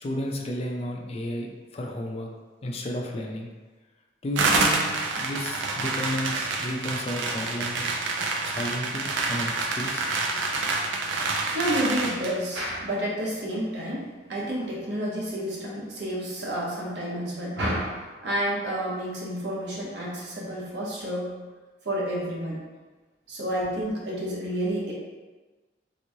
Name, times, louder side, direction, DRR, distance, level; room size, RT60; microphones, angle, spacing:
voice 1, 0.0-2.3 2.6-3.5 4.2-8.0 8.4-10.1, left 1 dB, 35° left, 1 dB, 0.4 m, -33 dB
sound 1, 4.4-12.4, right 3 dB, 85° right, 0.4 m, -27 dB
voice 2, 11.5-21.3 21.8-22.6 23.3-24.9, equal, 70° right, -4 dB, 0.9 m, -30 dB
3.4 x 3.0 x 2.6 m, 1.3 s
head